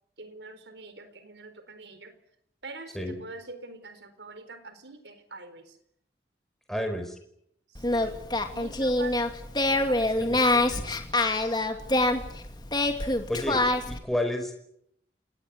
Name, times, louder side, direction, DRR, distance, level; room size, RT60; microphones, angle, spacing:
voice 1, 0.2-2.2 2.6-5.7 6.7-6.9 7.7-8.2 8.5-9.2 9.7-11.1, right 3 dB, 85° right, 11 dB, 4.3 m, -45 dB
voice 2, 6.7-7.1 10.3-10.6 13.3-14.6, left 1 dB, ahead, 5 dB, 4.8 m, -31 dB
Singing, 7.7-14.0, left 2 dB, 25° left, 2.6 m, -26 dB
29.0 x 19.0 x 9.6 m, 0.75 s
head